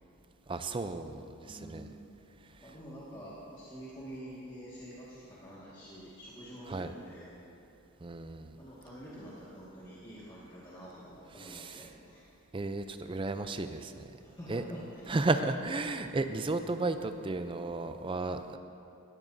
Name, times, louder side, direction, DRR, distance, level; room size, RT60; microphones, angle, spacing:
voice 1, 0.5-1.9 6.7-6.9 8.0-8.6 11.4-11.8 12.5-14.1 14.5-14.6 15.1-18.6, right 2 dB, 25° right, 9 dB, 0.4 m, -33 dB
voice 2, 1.4-1.9 2.6-7.3 8.6-12.3 14.4-15.1, equal, 20° left, -9 dB, 1.7 m, -47 dB
17.0 x 13.5 x 2.7 m, 2.7 s
head